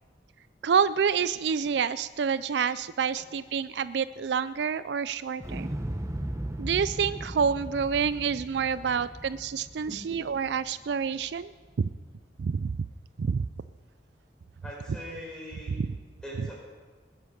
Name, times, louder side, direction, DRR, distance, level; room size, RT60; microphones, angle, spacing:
voice 1, 0.6-5.7 6.6-11.5 12.4-12.8 13.2-13.5 15.8-15.9, right 6 dB, 70° right, 16 dB, 0.4 m, -28 dB
Explosion, 5.4-11.4 11.8-11.9, right 1 dB, 15° right, 0.9 m, -37 dB
voice 2, 14.6-15.8 16.2-16.5, equal, 5° left, -4 dB, 5.2 m, -41 dB
20.5 x 10.5 x 5.8 m, 1.4 s
head